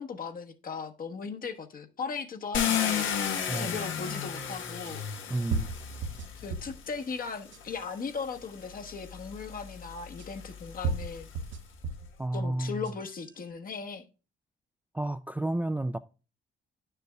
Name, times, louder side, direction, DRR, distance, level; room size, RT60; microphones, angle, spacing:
voice 1, 0.0-5.0 6.4-11.3 12.3-14.0, left 5 dB, 45° left, 1.1 m, -38 dB
Car, 2.5-6.6 7.6-7.7 8.2-11.5, left 8 dB, 80° left, 1.2 m, -33 dB
sound 1, 3.5-3.6 4.8-4.9 5.5-6.8 7.3-7.9 8.9-9.0 10.2-10.3 10.8-12.1 12.7-13.2, right 3 dB, 70° right, 0.9 m, -34 dB
voice 2, 5.3-5.7 12.2-12.9 14.9-16.0, right 1 dB, 10° right, 0.3 m, -31 dB
9.8 x 6.7 x 2.3 m
cardioid pair, 90°, 20 cm